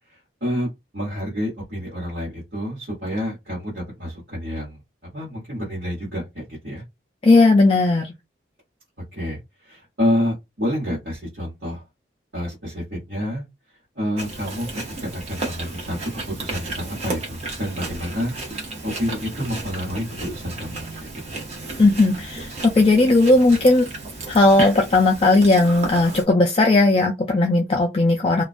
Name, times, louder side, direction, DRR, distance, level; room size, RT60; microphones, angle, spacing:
voice 1, 0.4-4.8 5.1-6.8 9.1-11.8 12.3-13.4 13.9-16.0 16.4-18.3 18.8-21.4, equal, 60° right, 1.1 m, -28 dB
voice 2, 7.2-8.1 21.8-23.9 24.3-28.4, left 2 dB, 30° left, 0.3 m, -16 dB
Chewing mastication, 14.2-26.2, right 2 dB, 35° right, 0.7 m, -33 dB
2.3 x 2.2 x 2.4 m
head